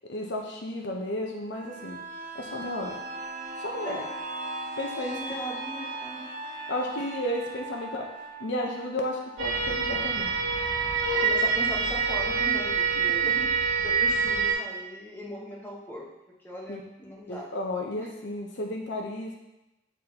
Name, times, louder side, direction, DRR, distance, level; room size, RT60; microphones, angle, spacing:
voice 1, 0.1-2.0 2.3-3.0 3.6-4.0 4.8-5.1 6.7-8.1 8.4-10.4 13.2-13.3 16.7-16.8 17.3-19.4, left 1 dB, 65° left, 0 dB, 0.8 m, -33 dB
sound 1, 1.5-11.1 11.5-11.6, right 2 dB, 45° right, 0.7 m, -39 dB
voice 2, 5.0-6.3 11.1-13.5 13.8-16.1 16.4-17.5 18.0-18.1, equal, 10° left, -4 dB, 1.1 m, -39 dB
sound 2, 9.4-14.5, right 5 dB, 80° right, 2.1 m, -26 dB
8.4 x 4.0 x 2.9 m, 0.95 s
head